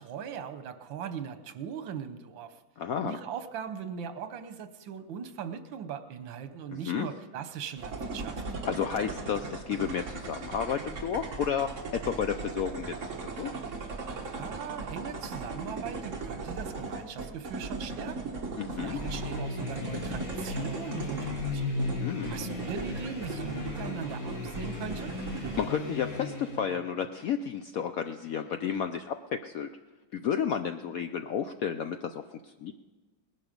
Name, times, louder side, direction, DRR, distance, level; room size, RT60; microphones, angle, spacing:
voice 1, 0.0-2.6 3.0-8.3 14.4-18.4 18.7-21.9 22.3-25.2, right 7 dB, 85° right, 10 dB, 1.6 m, -39 dB
voice 2, 2.8-3.2 6.7-7.1 8.6-13.5 18.6-19.0 22.0-22.3 25.6-29.7 30.1-32.7, left 8 dB, 75° left, 8 dB, 0.8 m, -32 dB
sound 1, 7.8-25.7, right 3 dB, 45° right, 1.6 m, -38 dB
sound 2, 18.9-26.8, left 3 dB, 50° left, 2.2 m, -36 dB
19.5 x 11.0 x 5.2 m, 1.2 s
omnidirectional pair, 2.0 m